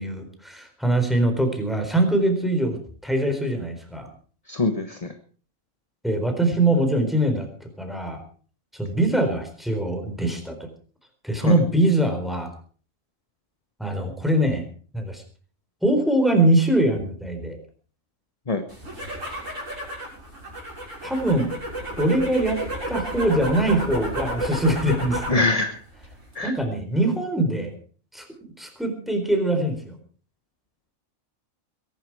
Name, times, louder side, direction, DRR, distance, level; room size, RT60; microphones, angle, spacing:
voice 1, 0.0-4.1 6.0-8.2 8.8-10.6 11.2-12.5 13.8-14.7 14.9-15.2 15.8-17.6 21.0-21.5 22.0-22.6 22.9-25.4 26.4-27.8 28.1-29.9, right 1 dB, ahead, 5 dB, 4.1 m, -23 dB
voice 2, 4.5-5.1 11.4-11.6 18.5-18.6 25.3-25.8 26.3-26.5, left 3 dB, 30° left, 7 dB, 1.3 m, -24 dB
sound 1, 18.7-25.4 25.8-26.3, right 1 dB, 65° right, 7.4 m, -31 dB
22.0 x 11.5 x 4.8 m, 0.42 s
omnidirectional pair, 1.4 m